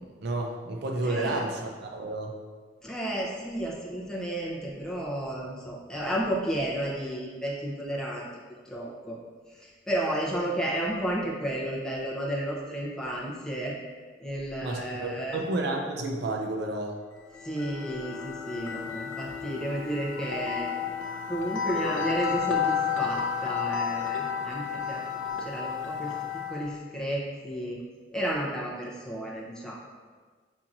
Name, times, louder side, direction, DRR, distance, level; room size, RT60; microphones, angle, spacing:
voice 1, 0.0-2.3 14.6-17.0, right 2 dB, 60° right, 2 dB, 0.5 m, -31 dB
voice 2, 1.0-1.4 2.8-8.3 8.7-9.2 9.5-13.7 14.2-15.4 17.4-20.7 21.3-25.0 25.3-27.8 28.1-29.8, right 1 dB, 5° left, -5 dB, 0.7 m, -32 dB
sound 1, 17.2-26.7, left 7 dB, 85° left, 0.4 m, -32 dB
7.2 x 2.8 x 2.5 m, 1.5 s
head